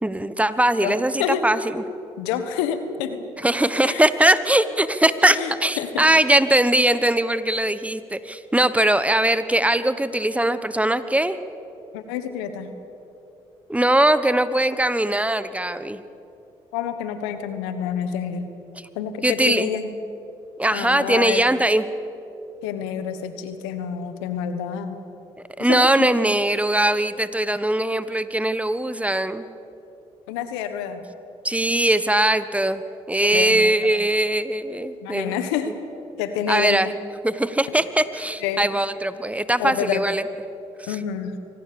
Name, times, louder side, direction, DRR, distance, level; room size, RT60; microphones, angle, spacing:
voice 1, 0.0-1.8 3.4-11.4 13.7-16.0 19.2-19.7 20.6-21.9 25.6-29.5 31.4-32.8 33.1-35.4 36.5-36.9 37.2-40.2 40.8-41.0, right 1 dB, 10° right, 13 dB, 1.2 m, -21 dB
voice 2, 0.8-1.4 2.2-3.2 3.8-4.0 5.3-6.0 11.9-12.7 16.7-18.5 18.9-19.9 20.7-21.4 22.6-25.0 25.6-26.1 30.3-31.0 33.2-33.6 33.8-33.9 35.0-35.7 36.2-36.8 38.4-38.7 39.6-40.0 40.9-41.4, left 9 dB, 85° left, 10 dB, 1.4 m, -28 dB
24.5 x 18.5 x 7.0 m, 2.9 s
hypercardioid pair, 55°, 14 cm